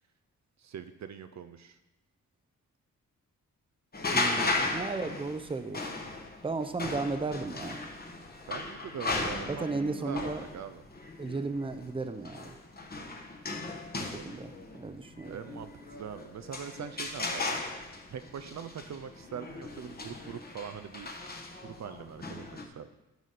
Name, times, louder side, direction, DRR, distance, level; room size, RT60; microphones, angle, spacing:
voice 1, 0.6-1.8 4.3-4.7 8.5-10.8 14.2-14.4 15.3-17.7 18.1-21.1 21.6-22.9, right 7 dB, 55° right, 10 dB, 0.5 m, -42 dB
sound 1, 3.9-22.7, left 2 dB, 30° left, 1.1 m, -36 dB
voice 2, 4.1-5.9 6.4-7.8 9.5-10.4 11.2-12.6 14.0-15.4, right 3 dB, 15° right, 9 dB, 0.6 m, -35 dB
9.1 x 4.1 x 6.5 m, 0.98 s
cardioid pair, 85°, 33 cm